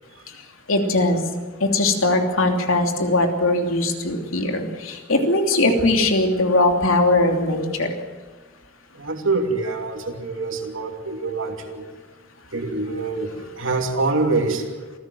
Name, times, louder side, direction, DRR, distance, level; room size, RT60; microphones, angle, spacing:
voice 1, 0.7-1.2 1.6-7.9, left 2 dB, 80° left, 4 dB, 2.9 m, -20 dB
voice 2, 9.0-11.8 12.5-14.6, right 3 dB, 70° right, 4 dB, 2.9 m, -25 dB
26.5 x 15.5 x 7.9 m, 1.4 s
head